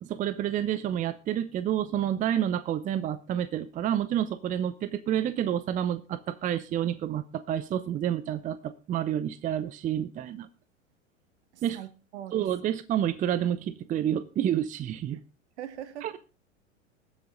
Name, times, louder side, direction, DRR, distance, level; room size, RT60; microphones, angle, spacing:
voice 1, 0.0-10.5 11.6-11.8 12.3-15.2 16.0-16.2, right 10 dB, 20° right, 0.7 m, -29 dB
voice 2, 11.5-12.4 15.6-16.2, right 11 dB, 60° right, 1.4 m, -41 dB
20.5 x 7.7 x 3.7 m
figure-of-eight pair, 95°, 38 cm